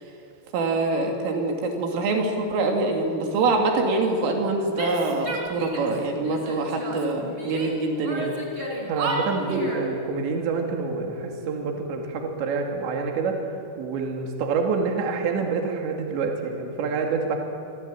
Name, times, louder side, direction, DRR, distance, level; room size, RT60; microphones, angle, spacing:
voice 1, 0.5-8.3 9.5-9.6, right 3 dB, 80° right, 2 dB, 5.2 m, -25 dB
sound 1, 2.8-12.8, left 3 dB, 60° left, 4.3 m, -41 dB
Female speech woman speaking / Yell, 4.7-6.0 6.2-7.7 8.0-9.9, right 1 dB, 25° right, 4.3 m, -32 dB
voice 2, 8.9-13.4 13.8-17.4, right 5 dB, 65° right, 2 dB, 4.4 m, -27 dB
25.5 x 25.5 x 8.8 m, 2.5 s
omnidirectional pair, 5.7 m